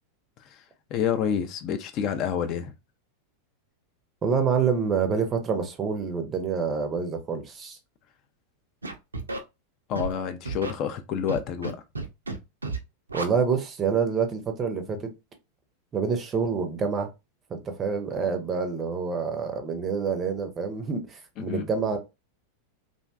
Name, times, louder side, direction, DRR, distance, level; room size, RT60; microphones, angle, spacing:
voice 1, 0.9-2.7 9.9-11.8 21.4-21.7, left 8 dB, 40° left, 0.3 m, -28 dB
voice 2, 4.2-7.8 13.1-15.0 15.9-17.1 17.5-22.0, right 5 dB, 25° right, 0.5 m, -27 dB
Scratching (performance technique), 8.8-9.4 10.0-10.1 10.5-10.7 11.3-11.7 12.0-12.4 12.6-12.8 13.1-13.2, right 3 dB, 80° right, 0.4 m, -31 dB
2.5 x 2.1 x 2.3 m
figure-of-eight pair, 90°, 0 cm